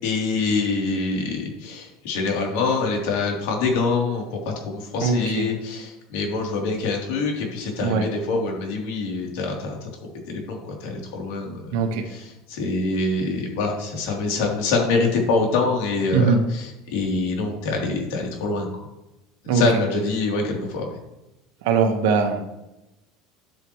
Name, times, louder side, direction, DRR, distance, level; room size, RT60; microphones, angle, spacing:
voice 1, 0.0-9.9 10.3-11.6 12.1-18.7 19.4-21.0, left 3 dB, 65° left, -1 dB, 3.3 m, -25 dB
voice 2, 5.0-5.5 7.8-8.0 11.7-12.1 16.1-16.4 19.5-19.6 21.6-22.4, right 5 dB, 70° right, 5 dB, 1.4 m, -21 dB
12.5 x 7.9 x 3.2 m, 0.97 s
cardioid pair, 175°, 0 cm